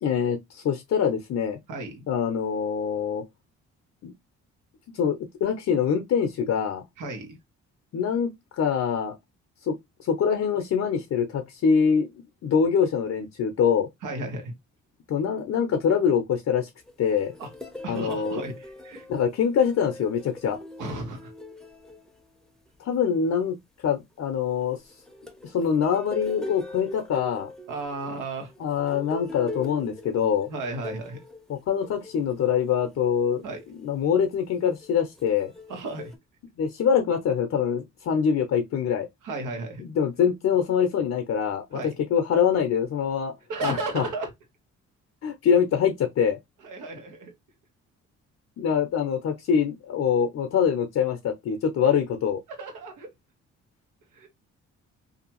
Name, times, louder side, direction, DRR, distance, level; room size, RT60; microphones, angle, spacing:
voice 1, 0.0-1.6 2.1-3.2 4.0-4.1 4.9-6.8 7.9-9.2 9.6-9.7 10.0-12.1 12.4-13.9 15.1-16.7 17.0-17.3 17.9-18.4 19.1-20.6 22.8-24.8 25.4-27.5 28.6-30.5 31.5-33.4 33.8-35.5 36.6-39.1 39.8-41.8 42.1-43.3 43.6-44.1 45.2-46.4 48.6-52.4, left 7 dB, 55° left, 0.6 m, -24 dB
voice 2, 1.7-2.1 7.0-7.4 14.0-14.5 17.4-17.5 17.8-19.1 20.8-21.3 27.7-28.5 30.5-31.2 33.4-33.6 35.7-36.1 39.2-39.8 41.7-42.0 43.5-44.3 46.6-47.3 52.5-53.1 54.1-54.3, right 2 dB, 80° right, 1.2 m, -34 dB
sound 1, 16.9-22.7 24.5-32.8 33.4-33.7 34.8-36.2, left 2 dB, ahead, 0.7 m, -41 dB
2.6 x 2.3 x 2.9 m
supercardioid pair, 70°, 31 cm